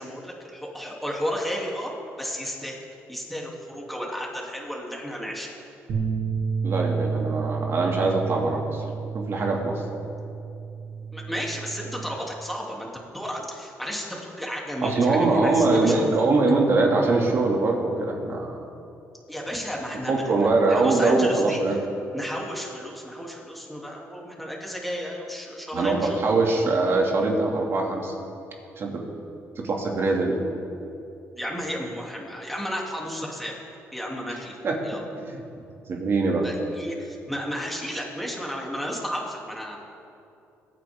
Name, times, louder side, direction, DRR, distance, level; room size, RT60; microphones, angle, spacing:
voice 1, 0.0-2.8 3.1-5.5 11.1-16.1 19.3-21.8 22.1-26.2 31.3-33.6 33.9-34.5 34.8-35.0 36.4-39.8, equal, ahead, -2 dB, 3.0 m, -33 dB
sound 1, 5.9-12.2, right 5 dB, 75° right, 2.6 m, -31 dB
voice 2, 6.6-8.9 9.1-9.8 14.8-18.6 20.1-21.8 25.7-28.1 28.8-29.0 29.6-30.4 34.6-34.8 35.2-35.4 35.9-36.5, right 3 dB, 50° right, 0 dB, 2.5 m, -22 dB
23.0 x 9.4 x 3.8 m, 2.7 s
cardioid pair, 90°, 5 cm